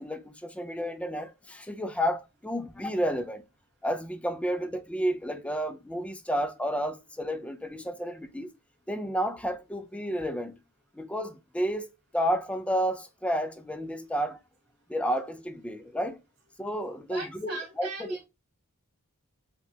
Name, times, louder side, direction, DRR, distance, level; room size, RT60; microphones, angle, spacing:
voice 1, 0.0-3.4 3.8-8.5 8.9-10.6 10.9-14.4 14.9-16.2 16.6-18.2, equal, 5° left, 0.3 m, -31 dB
voice 2, 17.1-18.3, right 2 dB, 50° right, 1.5 m, -39 dB
4.6 x 2.2 x 2.7 m
head